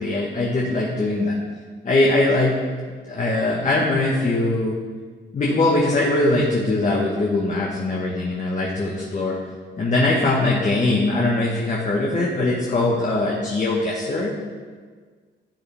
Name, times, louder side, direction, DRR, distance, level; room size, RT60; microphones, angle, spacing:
voice 1, 0.0-1.4 1.8-2.5 3.1-4.7 5.3-9.4 9.8-14.3, left 2 dB, 40° left, -4 dB, 1.7 m, -21 dB
12.0 x 8.8 x 3.7 m, 1.5 s
cardioid pair, 90°, 20 cm